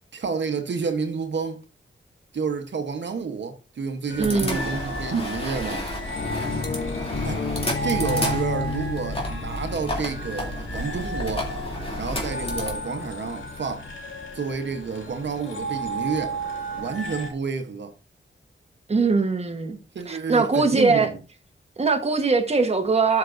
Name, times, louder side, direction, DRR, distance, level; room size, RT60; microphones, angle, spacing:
voice 1, 0.1-1.6 2.3-5.9 7.2-7.4 7.8-11.5 12.0-13.9 14.3-16.4 16.7-17.9 19.9-21.2, right 5 dB, 65° right, 1.0 m, -29 dB
sound 1, 4.1-17.3, right 2 dB, 85° left, 2.3 m, -34 dB
sound 2, 4.2-12.7, left 1 dB, 30° left, 2.8 m, -31 dB
voice 2, 4.2-4.6 18.9-19.8 20.1-21.1 21.8-23.2, right 4 dB, 30° right, 1.2 m, -21 dB
sound 3, 6.1-14.0, left 5 dB, 60° left, 1.0 m, -34 dB
12.5 x 5.9 x 2.6 m
wide cardioid pair, 90°, 20 cm